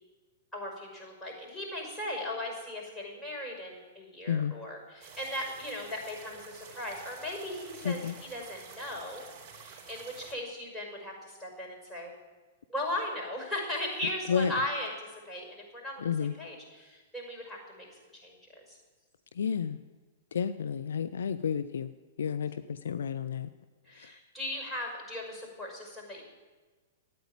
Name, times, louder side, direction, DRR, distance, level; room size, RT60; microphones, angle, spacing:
voice 1, 0.5-9.2 9.5-12.1 12.7-14.9 15.2-16.1 16.4-18.8 23.9-26.2, left 1 dB, 10° left, -2 dB, 5.7 m, -38 dB
sound 1, 5.0-10.3, right 6 dB, 35° right, 3.8 m, -50 dB
voice 2, 7.8-8.1 14.3-14.5 16.0-16.3 19.3-19.8 20.3-21.9 22.2-23.5 23.9-24.1, left 7 dB, 70° left, 12 dB, 0.5 m, -31 dB
13.0 x 9.4 x 8.9 m, 1.3 s
figure-of-eight pair, 110°, 0 cm